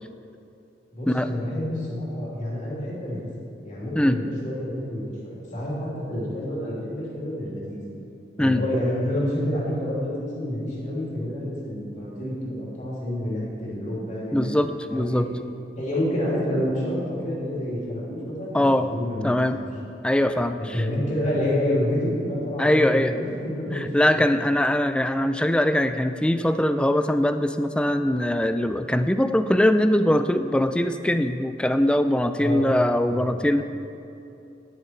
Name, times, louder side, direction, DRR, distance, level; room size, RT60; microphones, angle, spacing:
voice 1, 0.9-3.2 3.6-7.8 8.4-14.5 14.9-15.2 15.8-19.3 19.5-19.6 20.6-24.5 32.4-32.7 33.1-33.3, left 1 dB, 40° left, -6 dB, 3.0 m, -28 dB
voice 2, 14.3-15.3 18.5-18.9 19.2-19.6 20.0-20.9 22.6-23.1 23.7-33.6, left 1 dB, 5° left, 9 dB, 0.3 m, -22 dB
10.5 x 10.5 x 4.5 m, 2.8 s
head